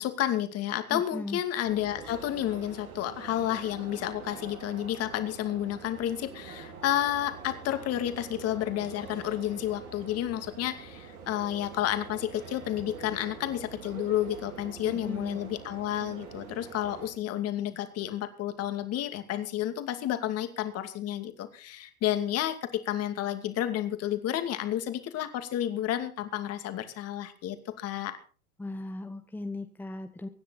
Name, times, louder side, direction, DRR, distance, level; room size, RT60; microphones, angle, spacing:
voice 1, 0.0-28.2, left 12 dB, 35° left, 9 dB, 2.6 m, -31 dB
voice 2, 0.9-1.4 14.8-15.4 28.6-30.3, left 2 dB, 5° left, 6 dB, 1.2 m, -37 dB
sound 1, 1.6-17.1, right 5 dB, 75° right, 5.4 m, -45 dB
24.0 x 10.0 x 4.2 m, 0.37 s
hypercardioid pair, 105°, 43 cm